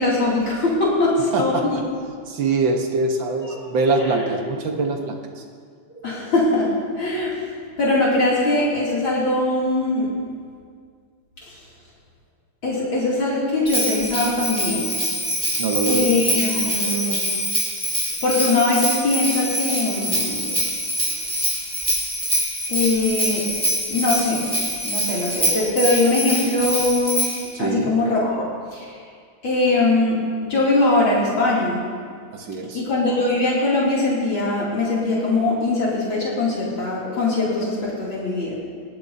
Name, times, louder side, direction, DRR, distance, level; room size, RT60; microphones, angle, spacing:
voice 1, 0.0-1.8 4.0-4.3 4.8-4.9 6.0-6.7 7.0-7.3 7.8-10.1 12.6-14.9 15.9-17.2 18.2-20.5 22.7-23.4 23.9-24.4 24.8-27.3 27.6-28.5 28.7-28.9 29.4-31.8 32.7-38.5, left 2 dB, 65° left, -8 dB, 3.6 m, -21 dB
voice 2, 1.3-1.8 2.3-5.4 15.6-16.1 27.5-27.9 32.3-32.8, right 3 dB, 65° right, 3 dB, 1.9 m, -23 dB
Bell, 13.7-27.5, equal, 10° right, 4.4 m, -24 dB
20.5 x 16.5 x 2.8 m, 2.1 s
omnidirectional pair, 2.3 m